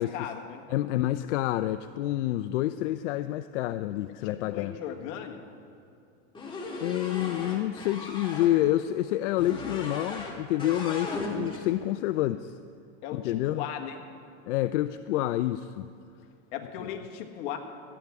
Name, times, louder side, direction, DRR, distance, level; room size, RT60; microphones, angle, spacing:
voice 1, 0.0-0.6 4.2-5.4 13.0-14.0 16.5-17.6, left 9 dB, 55° left, 3 dB, 1.6 m, -37 dB
voice 2, 0.7-4.7 6.8-12.6 13.1-13.6 14.5-15.9 16.8-16.9, left 14 dB, 80° left, 12 dB, 0.5 m, -28 dB
sound 1, 6.3-8.5 9.4-10.3 10.6-11.6, left 2 dB, 15° left, 2.0 m, -37 dB
17.0 x 13.0 x 3.6 m, 2.6 s
supercardioid pair, 135°, 36 cm